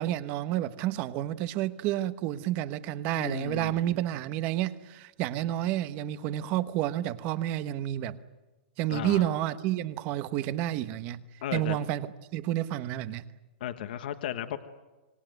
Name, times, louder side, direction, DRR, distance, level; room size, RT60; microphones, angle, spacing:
voice 1, 0.0-8.2 8.8-11.2 11.5-13.2, right 13 dB, 25° right, 14 dB, 1.0 m, -30 dB
voice 2, 3.1-3.8 8.9-9.3 11.4-11.8 13.6-14.6, left 11 dB, 50° left, 9 dB, 1.3 m, -35 dB
26.5 x 20.0 x 9.3 m, 1.2 s
supercardioid pair, 175°, 6 cm